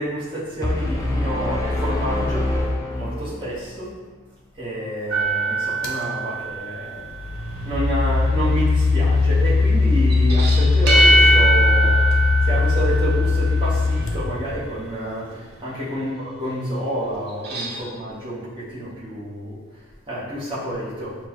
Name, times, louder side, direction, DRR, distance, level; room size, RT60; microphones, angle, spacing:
voice 1, 0.0-2.5 2.9-3.9 4.5-7.0 7.6-21.2, right 1 dB, 20° right, -9 dB, 1.0 m, -29 dB
sound 1, 0.6-3.7, left 1 dB, 15° left, 0.3 m, -25 dB
sound 2, 5.1-7.1 10.1-13.7 17.3-17.8, right 1 dB, 45° right, 0.5 m, -21 dB
sound 3, 5.8-6.0 6.9-15.0, left 3 dB, 65° left, 0.5 m, -19 dB
5.9 x 2.2 x 2.9 m, 1.3 s
head